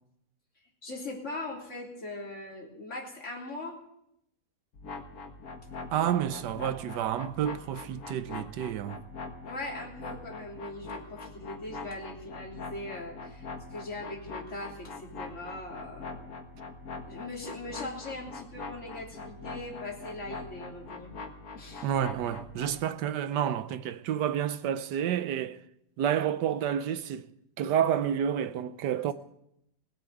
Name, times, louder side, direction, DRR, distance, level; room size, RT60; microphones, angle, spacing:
voice 1, 0.8-3.8 9.5-16.3 17.1-21.1 21.5-21.9, left 2 dB, 45° left, 3.5 m, -40 dB
sound 1, 4.7-22.8, left 3 dB, 60° left, 1.9 m, -43 dB
voice 2, 5.9-9.0 21.8-25.6 26.0-27.3 27.6-29.1, right 9 dB, 85° right, 1.4 m, -29 dB
18.0 x 8.8 x 9.1 m
omnidirectional pair, 1.8 m